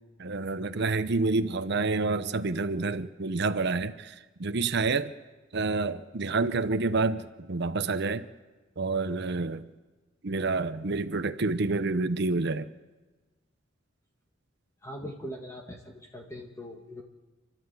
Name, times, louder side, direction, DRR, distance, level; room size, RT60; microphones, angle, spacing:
voice 1, 0.2-5.1 5.5-8.3 8.8-9.7 10.2-12.7, right 3 dB, 60° right, 11 dB, 0.8 m, -28 dB
voice 2, 14.8-17.0, equal, 15° left, 1 dB, 1.6 m, -41 dB
29.0 x 11.5 x 8.2 m, 1.2 s
head